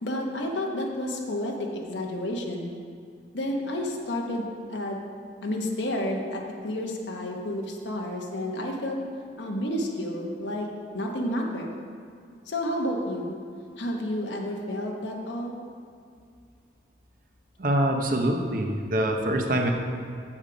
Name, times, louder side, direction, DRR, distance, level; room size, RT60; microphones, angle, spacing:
voice 1, 0.0-2.7 3.3-5.0 5.4-9.0 9.4-10.7 10.9-11.7 12.5-13.3 13.8-15.5, left 1 dB, 90° left, 0 dB, 1.0 m, -30 dB
voice 2, 17.6-19.7, right 1 dB, 50° right, 3 dB, 0.8 m, -25 dB
7.2 x 6.6 x 5.0 m, 2.3 s
head